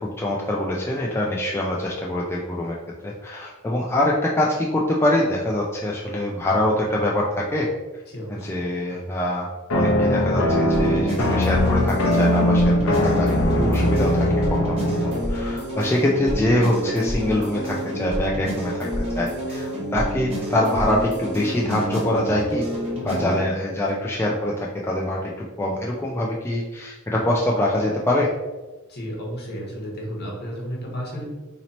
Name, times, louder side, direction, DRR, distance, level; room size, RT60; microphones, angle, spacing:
voice 1, 0.0-2.8 3.0-7.7 8.3-9.5 9.7-14.8 15.0-22.6 23.0-24.5 24.9-25.3 25.6-28.3, left 1 dB, 10° left, -3 dB, 0.3 m, -24 dB
voice 2, 8.1-8.5 23.1-23.4 28.9-31.2, equal, 50° left, -2 dB, 1.1 m, -32 dB
sound 1, 9.7-15.3, left 1 dB, 85° left, 0.7 m, -20 dB
sound 2, 10.5-23.4, equal, 30° right, 1.2 m, -29 dB
2.9 x 2.8 x 4.0 m, 1.2 s
head